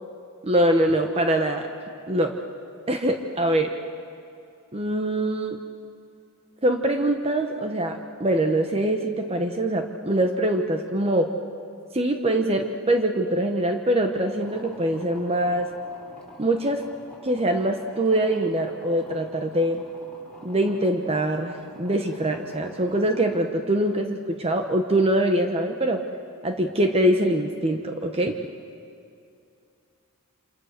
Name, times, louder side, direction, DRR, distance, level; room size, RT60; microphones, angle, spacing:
voice 1, 0.4-1.7 2.1-2.4 2.9-3.7 4.7-5.6 6.6-11.3 11.9-15.7 16.4-16.8 17.2-19.8 20.4-26.0 26.4-28.4, right 1 dB, 30° right, 4 dB, 1.1 m, -23 dB
sound 1, 14.4-23.4, left 1 dB, 5° left, 5.1 m, -48 dB
28.0 x 26.5 x 6.7 m, 2.5 s
head